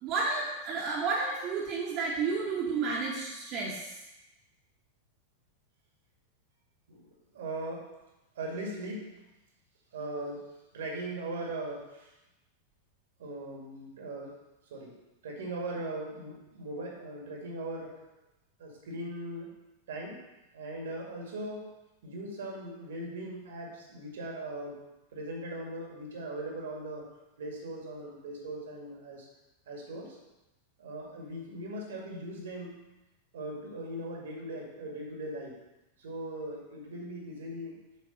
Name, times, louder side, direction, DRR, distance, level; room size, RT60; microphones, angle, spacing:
voice 1, 0.0-3.9, right 4 dB, 35° right, -4 dB, 1.6 m, -31 dB
voice 2, 6.9-7.9 8.4-9.1 9.9-10.5 10.7-12.1 13.2-14.4 14.7-15.0 15.2-18.0 18.6-19.6 19.9-20.2 20.5-21.7 22.0-24.8 25.1-27.1 27.4-29.3 29.7-30.2 30.8-32.8 33.3-35.6 36.0-37.8, right 1 dB, 60° right, -1 dB, 1.9 m, -39 dB
7.2 x 4.5 x 5.4 m, 0.98 s
figure-of-eight pair, 90°, 0 cm